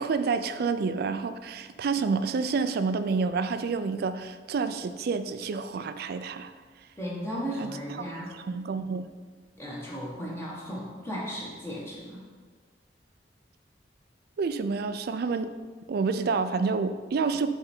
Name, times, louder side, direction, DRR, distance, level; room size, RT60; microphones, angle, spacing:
voice 1, 0.0-6.5 7.6-9.1 14.4-15.5 15.9-17.5, right 4 dB, 60° right, 11 dB, 0.3 m, -29 dB
voice 2, 7.0-8.3 9.6-12.2, equal, 15° left, -6 dB, 1.3 m, -35 dB
7.5 x 3.4 x 4.4 m, 1.5 s
head